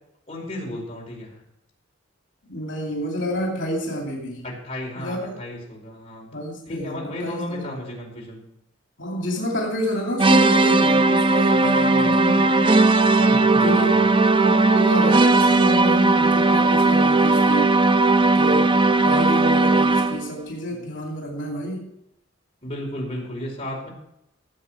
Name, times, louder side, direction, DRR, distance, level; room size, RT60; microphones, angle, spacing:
voice 1, 0.3-1.3 4.4-8.4 11.5-12.4 13.2-14.1 20.7-20.8 22.6-23.9, left 1 dB, 30° left, -2 dB, 4.7 m, -34 dB
voice 2, 2.4-4.4 4.9-5.4 6.3-7.8 9.0-12.8 13.6-17.8 18.3-18.7 19.0-21.9, equal, 75° left, -1 dB, 2.8 m, -29 dB
sound 1, 10.2-20.3, right 3 dB, 25° right, 0.5 m, -17 dB
16.5 x 7.7 x 6.2 m, 0.79 s
head